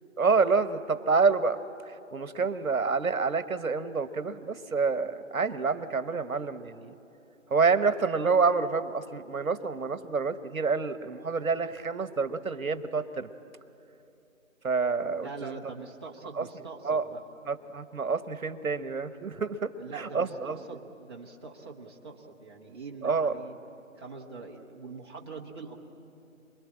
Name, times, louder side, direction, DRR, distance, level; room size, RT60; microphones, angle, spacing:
voice 1, 0.2-6.9 7.5-13.3 14.6-15.6 16.3-16.4 16.8-17.0 17.5-20.6 23.0-23.3, right 4 dB, 85° right, 12 dB, 1.2 m, -28 dB
voice 2, 15.2-17.2 19.8-23.5 24.0-25.7, right 4 dB, 20° right, -2 dB, 1.2 m, -43 dB
28.0 x 21.5 x 8.7 m, 2.9 s
figure-of-eight pair, 165°, 41 cm